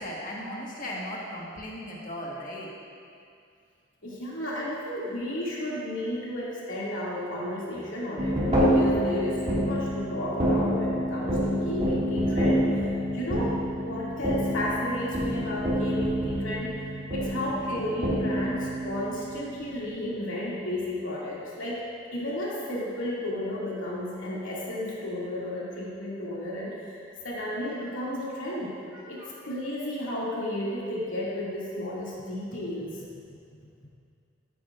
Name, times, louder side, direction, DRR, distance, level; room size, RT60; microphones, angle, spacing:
voice 1, 0.0-2.7 17.4-17.9 27.7-27.9 28.9-29.3, equal, 40° left, -4 dB, 1.6 m, -38 dB
voice 2, 4.0-12.6 13.1-16.7 17.1-21.8 22.1-27.0 27.2-28.7 29.1-33.0, left 1 dB, 85° left, -7 dB, 2.6 m, -33 dB
sound 1, 8.2-19.8, equal, 35° right, 2.2 m, -27 dB
13.5 x 9.4 x 2.6 m, 2.4 s
head